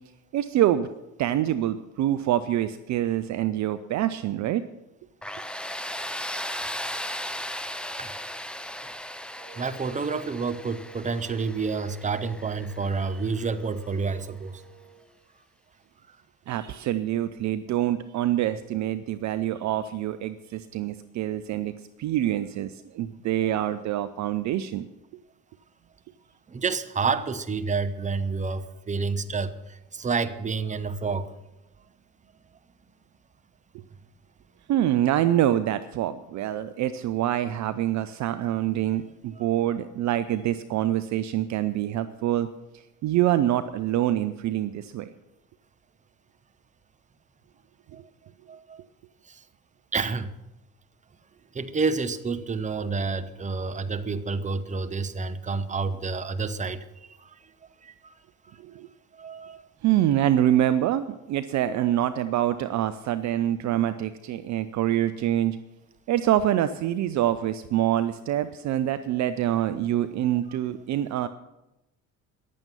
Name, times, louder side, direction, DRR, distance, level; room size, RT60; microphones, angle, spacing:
voice 1, 0.3-0.9 1.2-4.6 16.5-21.7 22.0-24.9 33.7-33.8 34.7-42.5 43.0-45.1 58.6-58.9 59.8-65.6 66.1-71.3, right 12 dB, 40° right, 12 dB, 0.6 m, -25 dB
Tools, 5.2-14.0, left 1 dB, ahead, 0.6 m, -37 dB
Wind instrument woodwind instrument, 9.4-15.1, right 8 dB, 70° right, 3.6 m, -52 dB
voice 2, 9.6-14.6 26.5-31.3 47.9-48.0 48.5-48.8 49.3-49.4 49.9-50.3 51.5-56.8 57.2-57.3 57.8-58.1 59.1-59.6, right 4 dB, 15° right, 10 dB, 1.0 m, -29 dB
14.5 x 10.5 x 5.7 m, 0.94 s
figure-of-eight pair, 55°, 43 cm